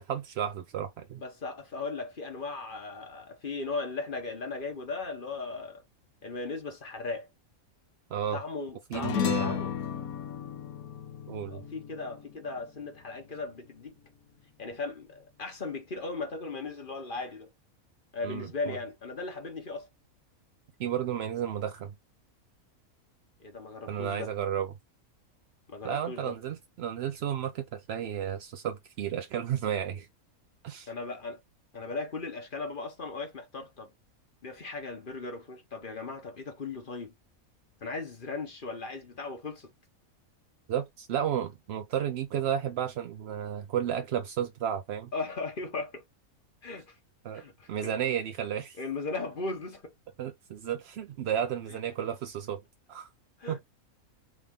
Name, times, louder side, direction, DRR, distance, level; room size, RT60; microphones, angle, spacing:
voice 1, 0.0-1.2 8.1-8.4 8.9-9.6 11.3-11.6 18.2-18.8 20.8-21.9 23.9-24.7 25.8-30.1 30.6-30.9 40.7-45.1 47.2-47.4 47.7-48.8 50.2-52.6 52.9-53.1 53.5-53.6, right 9 dB, 70° right, 0.6 m, -32 dB
voice 2, 1.2-5.8 6.2-7.3 8.3-9.7 11.5-14.0 14.6-17.5 18.1-19.9 23.4-24.3 25.7-26.3 30.9-31.4 31.7-33.9 34.4-37.1 37.8-39.7 45.1-46.0 46.6-47.0 47.3-47.7 48.8-49.9 51.7-51.8 53.4-53.6, left 3 dB, 40° left, 1.1 m, -37 dB
sound 1, 8.9-13.6, left 9 dB, 80° left, 1.2 m, -34 dB
3.6 x 3.5 x 3.6 m
omnidirectional pair, 1.5 m